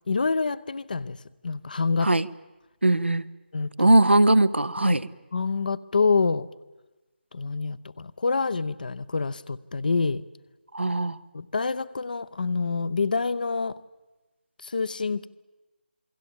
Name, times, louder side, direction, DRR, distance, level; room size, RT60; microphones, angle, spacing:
voice 1, 0.1-1.2 1.4-2.1 3.5-3.9 4.8-4.9 5.3-6.5 7.3-10.2 11.3-13.8 14.6-15.3, left 4 dB, 50° left, 17 dB, 0.8 m, -27 dB
voice 2, 2.8-3.2 3.8-5.1 10.7-11.2, right 2 dB, 80° right, 15 dB, 1.0 m, -20 dB
28.0 x 22.0 x 7.3 m, 1.1 s
figure-of-eight pair, 155°, 6 cm